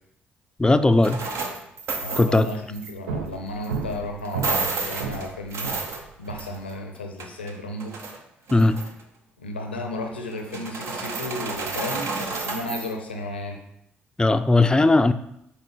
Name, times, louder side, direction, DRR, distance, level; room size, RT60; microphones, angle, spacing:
voice 1, 0.6-1.3 2.2-2.5 8.5-8.7 14.2-15.1, left 2 dB, 15° left, 10 dB, 0.4 m, -18 dB
sound 1, 1.0-2.9 3.6-3.8 4.2-6.7 7.0-8.2 8.5-9.0 10.3-12.9, right 3 dB, 55° right, 0.8 m, -31 dB
voice 2, 2.0-8.0 9.4-13.6, left 1 dB, 85° left, 3 dB, 0.6 m, -34 dB
sound 2, 2.0-2.3 2.5-6.5, right 5 dB, 80° right, 0.4 m, -34 dB
7.4 x 4.4 x 3.3 m, 0.78 s
figure-of-eight pair, 40°, 6 cm